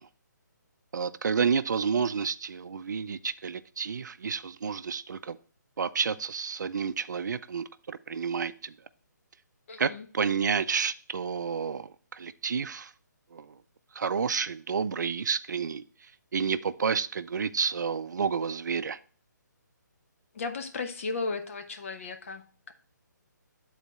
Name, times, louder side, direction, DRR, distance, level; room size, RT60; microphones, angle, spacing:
voice 1, 0.9-5.4 5.8-8.7 9.8-12.9 13.3-13.5 13.9-15.8 16.3-19.0, right 6 dB, 70° right, 14 dB, 0.4 m, -30 dB
voice 2, 9.7-10.1 20.3-22.7, left 4 dB, 45° left, 7 dB, 0.9 m, -35 dB
9.3 x 4.0 x 4.1 m, 0.41 s
hypercardioid pair, 165°, 10 cm